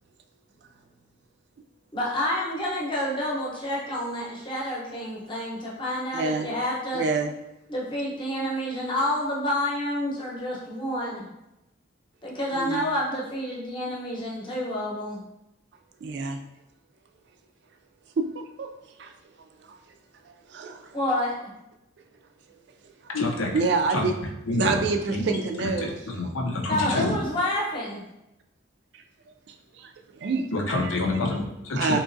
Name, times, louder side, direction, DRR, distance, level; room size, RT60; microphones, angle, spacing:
voice 1, 1.9-7.0 7.7-11.2 12.2-15.2 20.9-21.4 26.6-28.0, left 1 dB, 25° left, -5 dB, 0.8 m, -29 dB
voice 2, 6.1-6.5 6.9-7.3 12.5-12.9 16.0-16.4 18.2-18.7 19.0-19.1 19.7-19.8 20.5-20.9 23.0-23.1 23.5-24.2 24.6-26.3 26.9-27.1 29.8-30.5 30.8-31.0 31.7-32.0, right 4 dB, 60° right, 5 dB, 0.3 m, -27 dB
voice 3, 23.1-23.5 23.9-24.0 24.5-24.8 25.1-25.3 25.6-25.9 26.2-27.1 30.5-32.0, left 2 dB, 85° left, 0 dB, 0.6 m, -27 dB
3.6 x 2.9 x 2.6 m, 0.89 s
head